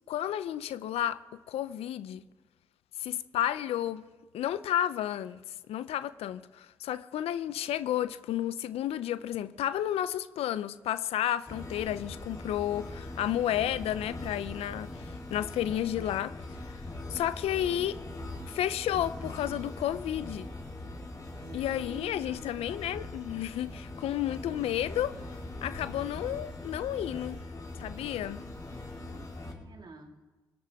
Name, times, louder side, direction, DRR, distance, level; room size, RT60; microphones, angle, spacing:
voice 1, 0.1-1.2 1.5-2.2 3.0-4.0 4.3-5.4 5.7-16.8 17.1-18.0 18.5-20.5 21.5-25.2 25.6-27.4 27.8-28.4, left 11 dB, 85° left, 0.5 m, -32 dB
sound 1, 11.5-29.5, left 2 dB, 35° left, 4.6 m, -41 dB
voice 2, 21.4-22.6 29.1-30.2, right 3 dB, 45° right, 2.3 m, -49 dB
19.5 x 19.0 x 3.6 m
supercardioid pair, 50°, 10 cm